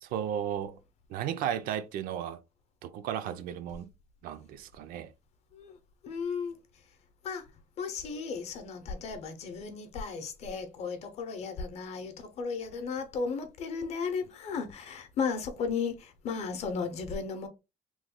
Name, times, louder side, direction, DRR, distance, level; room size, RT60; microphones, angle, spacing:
voice 1, 0.0-0.8 1.1-2.4 2.8-3.9 4.2-5.1, right 10 dB, 75° right, 0.4 m, -34 dB
voice 2, 6.0-6.6 7.2-7.5 7.8-17.5, left 5 dB, 45° left, 0.6 m, -35 dB
3.0 x 2.2 x 3.5 m
cardioid pair, 175°, 15 cm